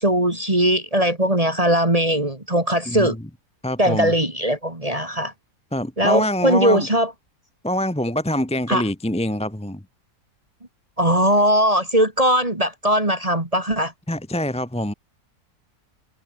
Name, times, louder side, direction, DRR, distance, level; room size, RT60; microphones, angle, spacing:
voice 1, 0.0-3.2 3.8-5.3 6.0-7.1 8.7-8.8 11.0-13.9, equal, 20° right, 3.0 m, -19 dB
voice 2, 2.9-3.2 3.6-4.1 5.7-6.9 7.6-9.8 14.1-14.9, left 1 dB, 5° left, 0.9 m, -25 dB
omnidirectional pair, 1.6 m